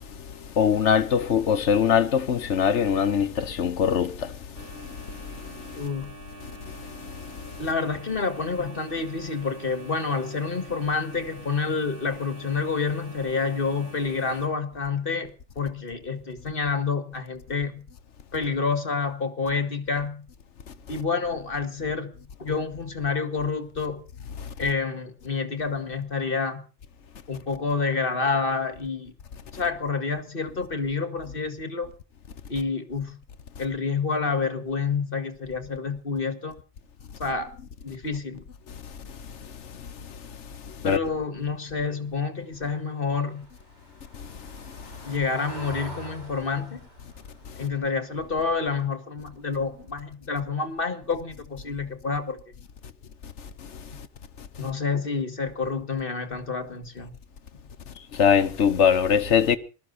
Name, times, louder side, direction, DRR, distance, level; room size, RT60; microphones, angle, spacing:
voice 1, 0.6-4.1 40.8-41.0 58.2-59.6, left 7 dB, 80° left, 1.4 m, -21 dB
sound 1, 4.6-14.5, equal, 85° right, 4.2 m, -44 dB
voice 2, 5.8-6.1 7.6-17.8 18.3-20.3 20.9-22.1 22.4-24.1 24.6-26.6 27.3-29.1 29.5-31.9 32.5-33.2 33.6-36.6 37.2-37.5 37.8-38.4 40.8-43.5 45.0-46.8 47.6-52.4 54.6-57.1, left 4 dB, 50° left, 2.1 m, -28 dB
Car passing by / Engine, 42.3-49.2 49.6-49.8 50.1-50.2, right 2 dB, 40° right, 5.8 m, -45 dB
20.5 x 13.5 x 4.2 m
omnidirectional pair, 1.2 m